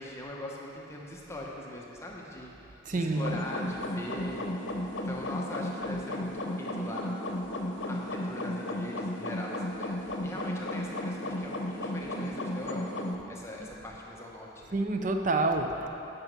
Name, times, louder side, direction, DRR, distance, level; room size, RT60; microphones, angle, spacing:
voice 1, 0.0-4.8 5.0-7.1 7.9-14.7, left 1 dB, 15° left, -3 dB, 0.9 m, -41 dB
voice 2, 2.8-3.4 14.7-15.9, right 2 dB, 40° right, 5 dB, 0.6 m, -28 dB
sound 1, 3.2-13.2, left 1 dB, 70° left, 0.8 m, -34 dB
9.4 x 6.1 x 6.7 m, 3.0 s
head